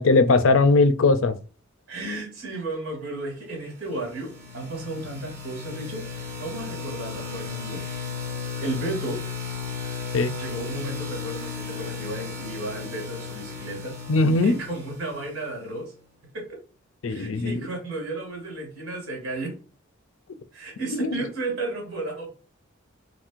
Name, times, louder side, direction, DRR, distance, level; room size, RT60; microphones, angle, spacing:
voice 1, 0.0-1.4 10.1-10.3 14.1-14.6 17.0-17.6 20.9-21.2, left 3 dB, 65° left, 0.5 m, -19 dB
voice 2, 1.9-7.8 8.6-9.2 10.4-14.0 14.3-15.9 16.3-16.6 17.1-19.5 20.5-22.3, right 2 dB, 85° right, 2.5 m, -33 dB
sound 1, 3.9-15.7, left 5 dB, 55° right, 1.3 m, -35 dB
4.4 x 4.1 x 2.5 m
head